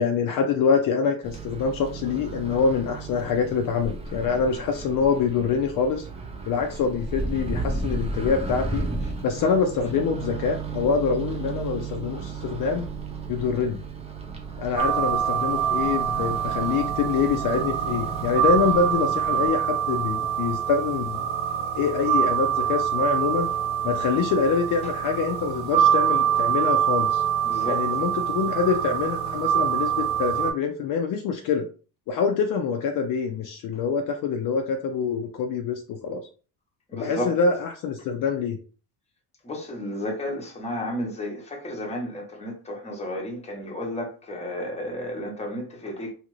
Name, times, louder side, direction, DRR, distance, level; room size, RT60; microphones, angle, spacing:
voice 1, 0.0-6.1 6.5-8.8 9.2-12.9 13.3-13.8 14.6-21.3 21.7-23.5 23.8-27.2 27.7-31.7 32.1-36.2 36.9-38.6, left 5 dB, 50° left, 0.5 m, -25 dB
Microwave oven, 1.2-19.5, right 4 dB, 15° right, 0.5 m, -34 dB
sound 1, 14.8-30.5, right 9 dB, 75° right, 0.9 m, -25 dB
voice 2, 27.4-27.8 36.9-37.3 39.4-46.1, left 1 dB, 15° left, 0.9 m, -32 dB
2.9 x 2.4 x 3.0 m
cardioid pair, 130°, 42 cm